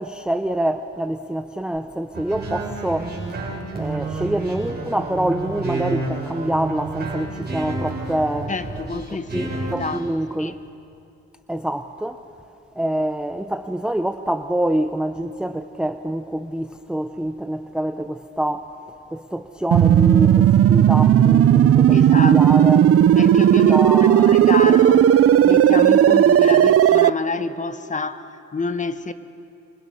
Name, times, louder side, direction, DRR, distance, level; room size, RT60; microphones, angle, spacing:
voice 1, 0.0-3.2 3.8-8.5 9.3-10.5 11.5-12.2 12.8-18.7 19.1-22.8 23.6-24.8 26.5-26.6, right 1 dB, 5° right, 0.7 m, -26 dB
sound 1, 2.1-10.0, right 3 dB, 35° right, 6.0 m, -30 dB
voice 2, 8.5-10.1 10.4-10.6 21.9-22.7 23.1-25.1 25.4-29.1, left 3 dB, 25° left, 1.2 m, -28 dB
sound 2, 19.7-27.1, right 10 dB, 50° right, 0.6 m, -14 dB
26.5 x 25.5 x 5.6 m
cardioid pair, 90°, 30 cm